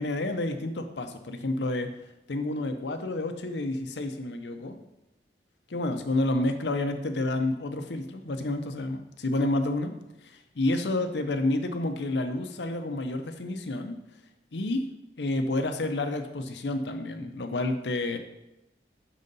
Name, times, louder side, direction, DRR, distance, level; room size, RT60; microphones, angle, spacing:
voice 1, 0.0-1.9 2.3-4.8 5.7-9.9 10.2-14.0 14.5-14.8 15.2-18.2, left 2 dB, 85° left, 7 dB, 0.7 m, -29 dB
6.5 x 4.0 x 5.3 m, 0.93 s
head